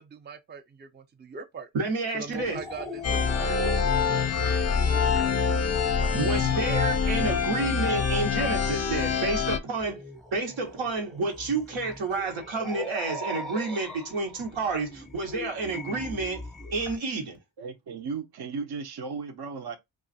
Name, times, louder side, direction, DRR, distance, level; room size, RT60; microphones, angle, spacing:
voice 1, 0.0-1.7 2.1-3.6 3.9-7.2, right 5 dB, 25° right, 0.5 m, -43 dB
voice 2, 1.7-2.6 6.1-10.0 10.3-16.4 16.7-17.4, right 3 dB, 85° right, 1.1 m, -30 dB
sound 1, 2.4-17.0, left 1 dB, ahead, 0.8 m, -41 dB
sound 2, 3.0-9.6, left 6 dB, 35° left, 0.5 m, -25 dB
voice 3, 17.6-19.8, right 5 dB, 55° right, 0.7 m, -35 dB
2.4 x 2.4 x 4.0 m
cardioid pair, 50°, 46 cm